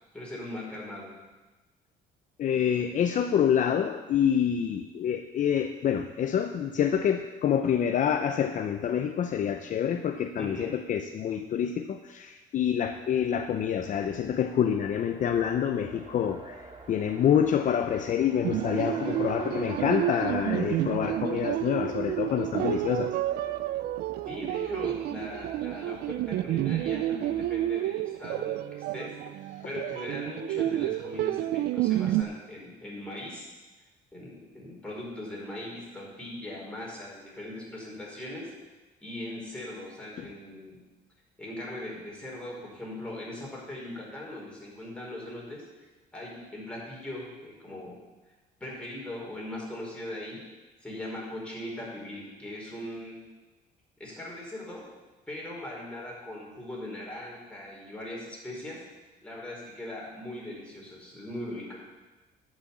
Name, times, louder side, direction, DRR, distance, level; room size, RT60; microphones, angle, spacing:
voice 1, 0.1-1.1 10.4-10.7 24.2-29.1 29.6-33.5 34.1-38.5 39.0-40.8 41.4-45.6 46.1-48.0 48.6-50.4 50.8-53.2 54.0-54.8 55.3-58.8 59.2-61.8, left 1 dB, 5° left, -4 dB, 4.9 m, -39 dB
voice 2, 2.4-23.2 40.2-40.3, left 8 dB, 50° left, 7 dB, 0.7 m, -27 dB
Race car auto racing, 12.9-27.8, right 2 dB, 30° right, 2.1 m, -48 dB
sound 1, 18.4-32.2, right 14 dB, 70° right, 0.4 m, -30 dB
11.0 x 6.5 x 8.5 m, 1.2 s
cardioid pair, 110°, 17 cm